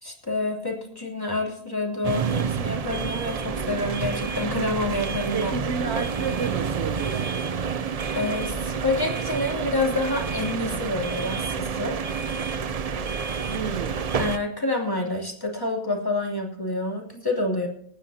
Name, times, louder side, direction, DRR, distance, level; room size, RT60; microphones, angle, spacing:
voice 1, 0.0-5.5 8.1-12.0 14.2-17.7, left 2 dB, 15° left, 3.1 m, -28 dB
sound 1, 2.0-14.4, right 6 dB, 45° right, 0.5 m, -29 dB
voice 2, 5.3-7.3 13.5-14.1, right 5 dB, 65° right, 0.9 m, -31 dB
28.5 x 9.7 x 2.8 m
omnidirectional pair, 1.3 m